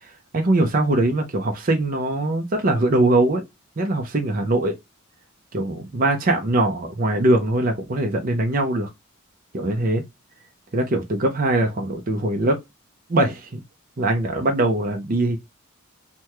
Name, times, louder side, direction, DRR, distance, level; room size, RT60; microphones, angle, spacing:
voice 1, 0.3-3.4 3.8-4.8 5.5-8.9 9.5-10.0 10.7-12.6 13.1-13.6 14.0-15.4, right 2 dB, 40° right, 0.6 m, -21 dB
3.4 x 2.2 x 2.9 m
head